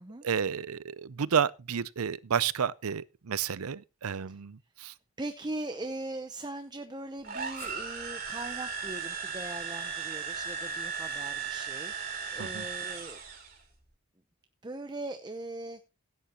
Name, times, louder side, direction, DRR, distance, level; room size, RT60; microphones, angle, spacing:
voice 1, 0.2-4.9 12.4-12.6, right 7 dB, 90° right, 0.6 m, -31 dB
voice 2, 5.2-13.2 14.6-15.8, right 2 dB, 20° right, 0.7 m, -40 dB
sound 1, 7.2-13.6, right 6 dB, 40° right, 3.2 m, -36 dB
sound 2, 7.5-11.8 12.2-12.3 13.4-13.5, left 2 dB, 10° left, 5.2 m, -56 dB
16.5 x 9.5 x 3.0 m
head